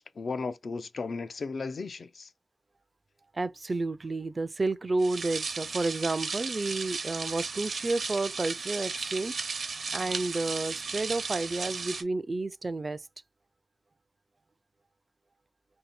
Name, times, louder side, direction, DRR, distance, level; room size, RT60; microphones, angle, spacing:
voice 1, 0.0-2.3, left 4 dB, 70° left, 0.4 m, -35 dB
voice 2, 3.3-13.1, right 2 dB, 40° right, 0.3 m, -31 dB
sound 1, 5.0-12.0, right 4 dB, 75° right, 0.7 m, -35 dB
3.7 x 2.7 x 4.1 m
cardioid pair, 60°, 0 cm